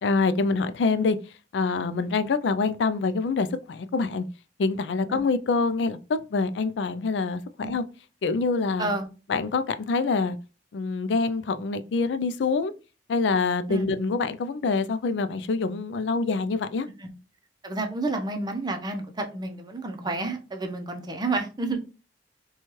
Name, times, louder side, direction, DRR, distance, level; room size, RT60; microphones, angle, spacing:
voice 1, 0.0-1.2 1.5-4.2 4.6-7.4 7.7-7.8 8.2-8.9 9.3-10.4 10.7-12.7 13.1-16.9, left 4 dB, 85° left, 0.4 m, -25 dB
voice 2, 17.6-21.8, right 2 dB, 25° right, 0.6 m, -30 dB
4.3 x 2.3 x 3.0 m
head